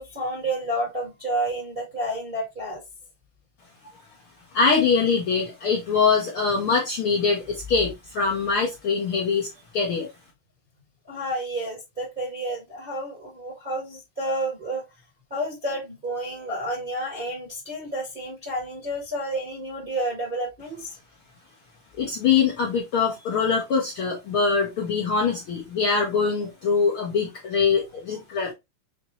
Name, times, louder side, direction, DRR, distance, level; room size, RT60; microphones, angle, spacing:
voice 1, 0.0-2.8 11.1-14.8 15.3-20.9, right 1 dB, 25° right, 1.1 m, -30 dB
voice 2, 4.5-9.5 9.7-10.1 22.0-28.5, left 5 dB, 60° left, 1.5 m, -23 dB
5.9 x 2.6 x 3.0 m
omnidirectional pair, 3.6 m